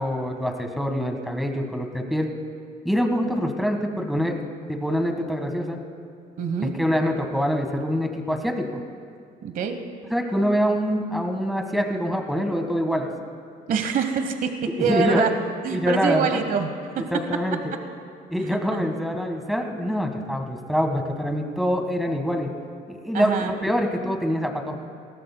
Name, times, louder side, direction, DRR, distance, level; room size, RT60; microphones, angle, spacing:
voice 1, 0.0-2.3 2.8-4.4 4.7-5.8 6.6-8.8 10.1-13.1 14.9-15.3 15.7-16.4 17.1-17.6 18.3-22.5 22.9-24.8, equal, ahead, 3 dB, 1.5 m, -25 dB
voice 2, 6.4-6.7 9.4-9.8 13.7-15.3 15.6-16.7 16.9-17.0 18.4-18.8 23.1-23.5, right 6 dB, 55° right, 7 dB, 1.1 m, -25 dB
21.5 x 18.0 x 2.2 m, 2.2 s
cardioid pair, 110°, 17 cm